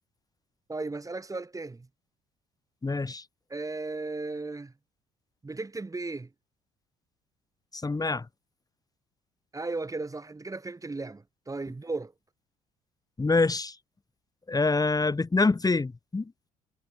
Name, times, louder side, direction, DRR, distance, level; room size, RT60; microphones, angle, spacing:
voice 1, 0.7-1.9 3.5-4.7 5.4-6.3 9.5-12.1, right 3 dB, 20° right, 1.5 m, -35 dB
voice 2, 2.8-3.2 7.7-8.2 13.2-13.7 14.5-16.3, left 3 dB, 20° left, 1.6 m, -25 dB
hypercardioid pair, 50°, 18 cm